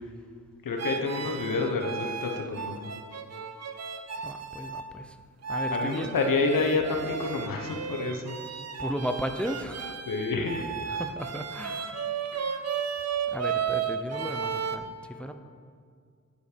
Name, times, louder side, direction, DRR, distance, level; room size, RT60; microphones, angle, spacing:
voice 1, 0.6-2.9 5.7-8.4 10.1-10.7 12.4-12.6, left 3 dB, 85° left, 3 dB, 1.0 m, -28 dB
sound 1, 0.8-4.9 5.4-14.8, right 6 dB, 55° right, 0.6 m, -34 dB
voice 2, 4.2-5.2 5.5-6.1 8.8-10.0 11.0-11.9 13.3-15.3, equal, 5° left, 7 dB, 0.5 m, -35 dB
8.3 x 6.5 x 4.9 m, 2.1 s
cardioid pair, 65°, 32 cm